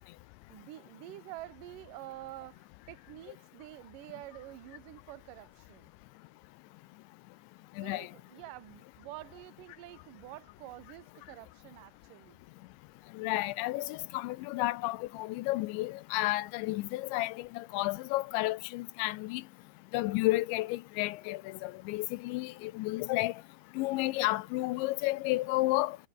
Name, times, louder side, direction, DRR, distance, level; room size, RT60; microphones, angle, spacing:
voice 1, 0.5-5.9 7.8-12.4 14.4-14.5, right 16 dB, 70° right, 2.0 m, -48 dB
voice 2, 7.8-8.1 13.2-19.4 19.9-23.3 23.8-26.0, left 19 dB, 80° left, 2.7 m, -32 dB
omnidirectional pair, 5.8 m